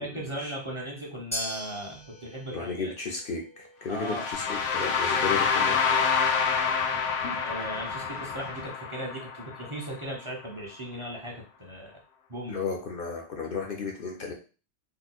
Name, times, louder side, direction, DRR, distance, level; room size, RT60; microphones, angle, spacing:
voice 1, 0.0-2.9 3.9-4.3 7.3-12.0 12.3-12.6, right 1 dB, 30° right, -1 dB, 0.7 m, -37 dB
sound 1, 1.3-9.7, equal, 5° left, 0.6 m, -44 dB
voice 2, 2.5-5.9 7.2-7.3 12.5-14.3, left 4 dB, 60° left, 2 dB, 0.7 m, -34 dB
sound 2, 3.9-9.9, left 6 dB, 85° left, 0.9 m, -27 dB
sound 3, 4.3-8.7, right 1 dB, 65° right, 1.1 m, -47 dB
3.0 x 2.2 x 4.1 m, 0.36 s
omnidirectional pair, 1.2 m